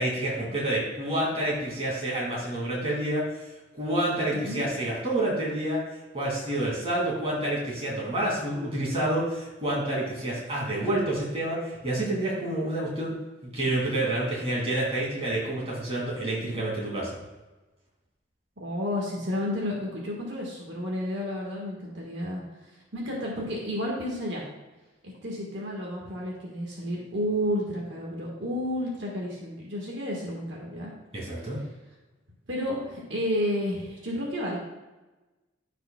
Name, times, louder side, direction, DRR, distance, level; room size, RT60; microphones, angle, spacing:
voice 1, 0.0-3.2 3.7-5.8 6.1-13.2 13.4-17.1 31.1-31.6, right 1 dB, 30° right, -5 dB, 2.5 m, -28 dB
voice 2, 4.3-4.6 18.6-22.4 22.9-24.4 25.0-30.9 31.4-31.5 32.5-34.6, equal, 65° right, -3 dB, 1.5 m, -31 dB
14.0 x 5.0 x 2.3 m, 1.1 s
head